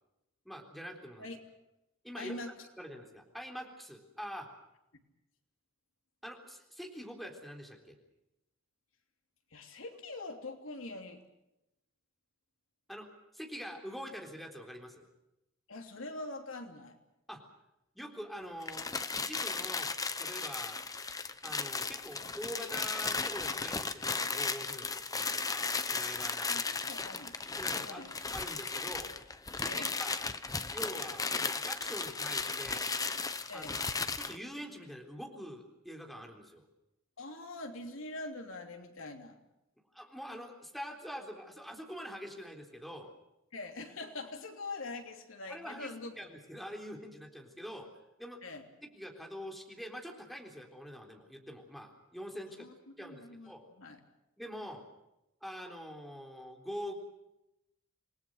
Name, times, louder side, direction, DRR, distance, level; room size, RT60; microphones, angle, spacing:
voice 1, 0.5-1.3 2.0-2.4 2.8-4.5 6.2-7.9 12.9-13.1 13.3-15.0 17.3-17.4 18.0-20.8 21.4-26.6 27.6-28.0 28.3-29.1 29.6-30.2 30.7-32.9 33.5-33.8 34.2-36.6 39.9-43.1 45.5-45.9 46.2-47.9 48.2-48.4 48.9-52.7 53.0-53.6 54.4-54.9 55.4-57.0, equal, ahead, 2 dB, 3.7 m, -45 dB
voice 2, 2.1-2.7 9.5-11.2 15.7-17.0 26.5-27.4 27.8-28.1 29.7-29.9 33.5-33.8 37.2-39.4 43.5-46.3 48.4-48.7 52.5-54.0, left 2 dB, 70° left, 4 dB, 3.1 m, -44 dB
sound 1, 18.6-34.4, left 4 dB, 20° left, 1.0 m, -35 dB
28.0 x 20.5 x 6.5 m, 0.90 s
head